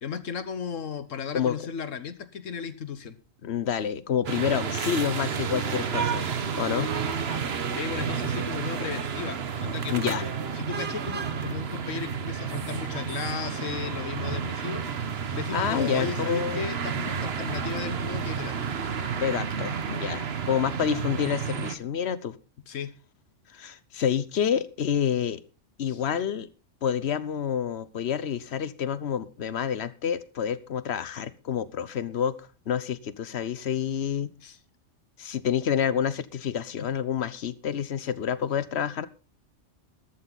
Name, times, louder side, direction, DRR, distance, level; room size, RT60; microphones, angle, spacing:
voice 1, 0.0-3.2 7.8-14.9 15.3-18.7 22.7-22.9 25.9-26.0 34.4-34.6 36.8-36.9, left 7 dB, 85° left, 13 dB, 1.5 m, -35 dB
voice 2, 3.4-6.3 6.6-6.9 9.9-10.2 15.5-16.6 19.2-22.4 23.5-25.4 25.8-26.5 26.8-34.3 35.2-39.1, left 8 dB, 60° left, 17 dB, 1.1 m, -28 dB
sound 1, 4.3-21.8, right 6 dB, 55° right, 1.2 m, -31 dB
13.5 x 12.5 x 4.0 m, 0.34 s
omnidirectional pair, 1.3 m